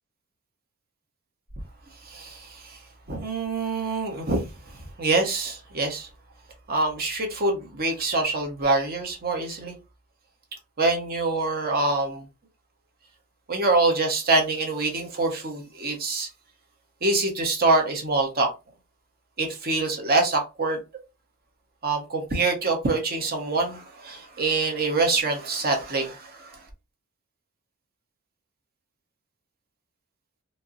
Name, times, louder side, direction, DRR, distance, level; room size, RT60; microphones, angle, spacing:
voice 1, 2.0-2.8 3.1-4.5 5.0-6.1 6.7-9.7 10.8-12.3 13.5-16.3 17.0-18.5 19.4-20.8 21.8-26.6, right 3 dB, 45° right, 1.0 m, -25 dB
4.1 x 2.1 x 2.4 m
head